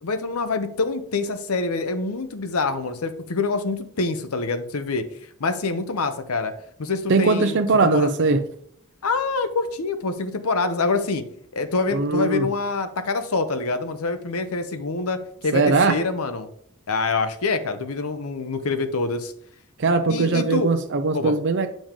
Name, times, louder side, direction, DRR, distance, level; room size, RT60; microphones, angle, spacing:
voice 1, 0.0-5.1 5.4-6.5 6.8-8.1 9.0-11.2 11.5-15.2 15.4-16.5 16.9-19.3 20.1-20.7 21.1-21.3, left 3 dB, 80° left, 10 dB, 0.8 m, -25 dB
voice 2, 7.1-8.4 11.9-12.5 15.5-16.0 19.8-21.7, right 3 dB, 55° right, 7 dB, 0.5 m, -20 dB
8.9 x 5.1 x 3.7 m, 0.66 s
head